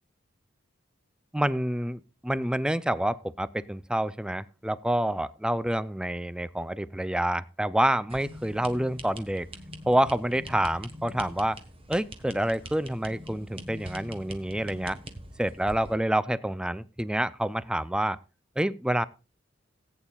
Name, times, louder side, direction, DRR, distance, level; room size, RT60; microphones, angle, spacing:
voice 1, 1.3-9.5 9.9-11.6 11.9-15.0 15.4-18.2 18.6-19.1, right 1 dB, 5° right, 17 dB, 0.4 m, -28 dB
sound 1, 8.1-16.0, right 1 dB, 30° right, 1.4 m, -44 dB
18.0 x 8.8 x 2.4 m, 0.31 s
head